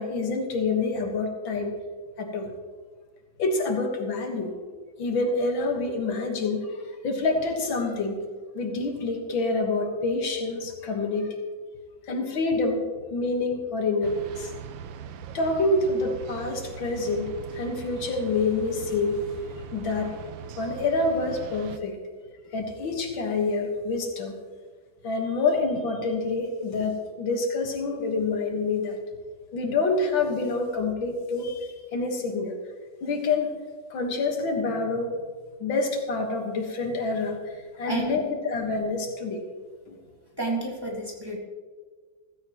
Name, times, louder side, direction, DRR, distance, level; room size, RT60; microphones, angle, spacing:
voice 1, 0.0-1.8 2.2-2.5 3.4-4.6 5.0-6.8 7.0-8.2 8.5-11.4 12.1-12.8 13.1-14.5 15.3-19.3 19.7-20.1 20.6-22.0 22.5-24.4 25.0-29.0 29.5-32.6 33.0-33.6 33.9-35.2 35.6-39.4 39.9-40.0, left 3 dB, 85° left, 3 dB, 2.3 m, -27 dB
sound 1, 14.0-21.8, right 9 dB, 80° right, 1.4 m, -41 dB
voice 2, 37.9-38.2 40.4-41.4, right 2 dB, 10° right, -2 dB, 2.0 m, -30 dB
15.5 x 15.0 x 3.0 m, 1.5 s
omnidirectional pair, 2.1 m